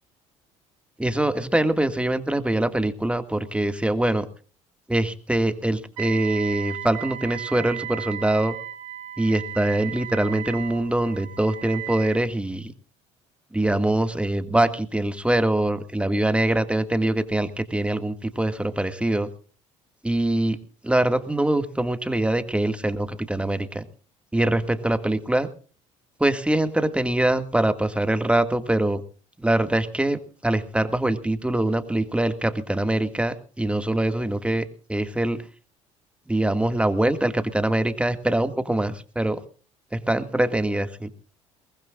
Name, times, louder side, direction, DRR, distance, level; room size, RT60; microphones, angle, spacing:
voice 1, 1.0-4.3 4.9-8.6 9.2-12.7 13.5-19.3 20.0-20.6 20.8-23.8 24.3-25.5 26.2-29.0 29.4-35.4 36.3-39.4 39.9-41.1, right 1 dB, 5° right, 10 dB, 2.0 m, -23 dB
Wind instrument woodwind instrument, 6.0-12.2, right 12 dB, 80° right, 4.0 m, -35 dB
22.5 x 20.0 x 2.5 m, 0.38 s
hypercardioid pair, 65°, 16 cm